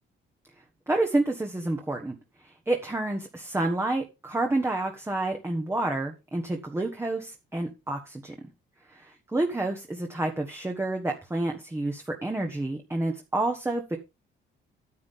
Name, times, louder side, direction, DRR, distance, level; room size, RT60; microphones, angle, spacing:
voice 1, 0.9-2.1 2.7-8.3 8.9-14.0, right 2 dB, 10° right, 3 dB, 1.4 m, -29 dB
9.7 x 8.6 x 3.7 m, 0.26 s
cardioid pair, 90°, 20 cm